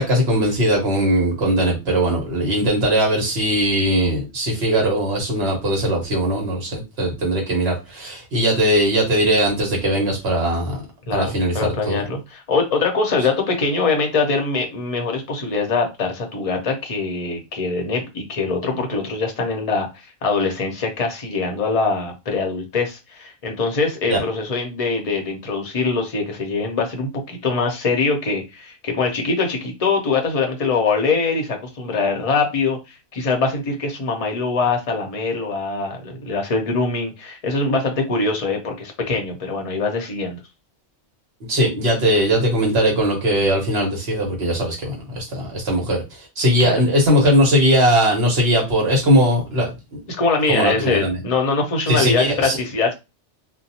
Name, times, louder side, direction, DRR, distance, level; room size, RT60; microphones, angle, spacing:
voice 1, 0.0-10.8 11.1-12.0 24.1-24.2 41.5-50.0 50.5-51.2 51.9-52.6, equal, 55° right, 0 dB, 1.3 m, -19 dB
voice 2, 11.1-40.4 46.6-46.8 50.1-52.9, left 4 dB, 40° left, 3 dB, 0.6 m, -23 dB
2.7 x 2.0 x 2.7 m, 0.25 s
omnidirectional pair, 1.3 m